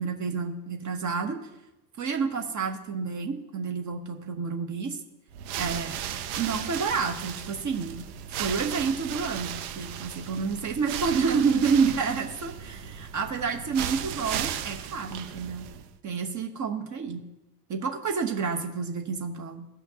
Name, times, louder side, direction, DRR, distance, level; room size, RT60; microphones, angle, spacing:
voice 1, 0.0-1.4 2.0-5.0 5.6-6.0 6.4-8.1 8.4-15.7 16.0-17.3 17.7-19.7, right 5 dB, 40° right, 4 dB, 1.1 m, -29 dB
sound 1, 5.3-16.0, right 9 dB, 70° right, 0.7 m, -36 dB
14.0 x 5.7 x 2.8 m, 0.94 s
hypercardioid pair, 60°, 46 cm